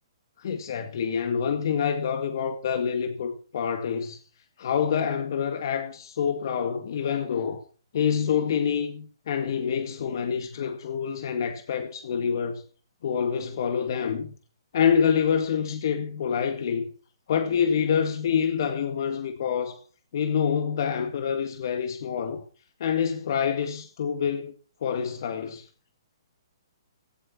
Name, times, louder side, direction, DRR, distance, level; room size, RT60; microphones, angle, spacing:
voice 1, 0.4-4.2 4.6-7.6 7.9-12.6 13.0-14.3 14.7-16.9 17.3-19.8 20.1-22.4 22.8-24.5 24.8-25.6, left 7 dB, 60° left, 2.0 m, -26 dB
16.5 x 11.5 x 4.4 m
hypercardioid pair, 135°, 2 cm